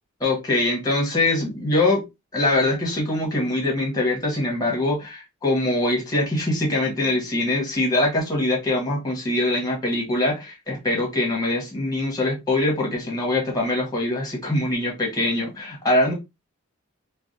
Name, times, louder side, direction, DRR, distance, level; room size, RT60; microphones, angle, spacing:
voice 1, 0.2-2.0 2.3-16.1, left 2 dB, 15° left, 1.1 m, -23 dB
3.3 x 2.3 x 2.5 m
head